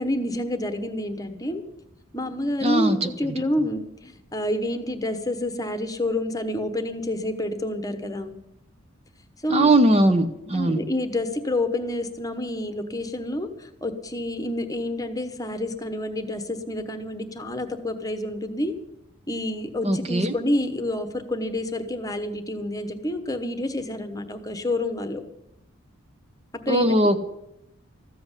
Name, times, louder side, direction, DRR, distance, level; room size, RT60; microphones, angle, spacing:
voice 1, 0.0-1.6 2.1-8.4 9.4-9.7 10.5-18.7 19.3-25.2 26.7-27.0, left 1 dB, 15° left, 8 dB, 1.1 m, -28 dB
voice 2, 2.6-3.1 9.5-10.9 19.8-20.3 26.7-27.2, right 1 dB, 30° right, 8 dB, 0.8 m, -20 dB
14.0 x 7.8 x 9.8 m, 0.83 s
head